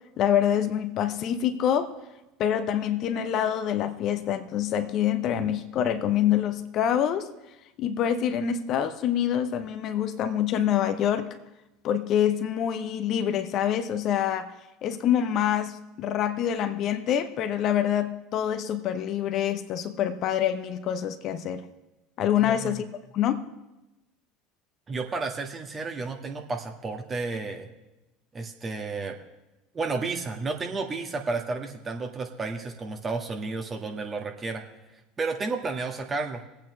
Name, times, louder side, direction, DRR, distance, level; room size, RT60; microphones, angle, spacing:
voice 1, 0.2-1.9 2.4-7.3 7.8-11.3 11.8-14.5 14.8-21.6 22.2-22.8 23.1-23.4, left 10 dB, 50° left, 10 dB, 0.8 m, -26 dB
voice 2, 22.4-22.8 24.9-27.7 28.3-29.2 29.7-34.6 35.2-36.4, right 3 dB, 30° right, 3 dB, 1.6 m, -32 dB
21.5 x 8.7 x 3.2 m, 1.0 s
hypercardioid pair, 75°, 0 cm